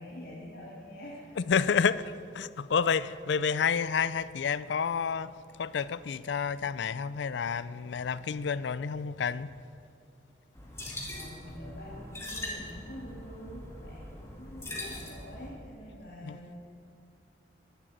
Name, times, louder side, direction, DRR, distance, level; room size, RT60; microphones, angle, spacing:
voice 1, 0.0-1.4 1.7-1.9 11.1-16.5, equal, 65° left, 2.3 m, -46 dB
voice 2, 1.5-2.0 2.3-5.3 5.6-9.5 16.2-16.4, left 6 dB, 80° left, 0.4 m, -29 dB
sound 1, 10.5-15.5, left 1 dB, 15° left, 2.2 m, -41 dB
11.5 x 11.0 x 9.2 m
head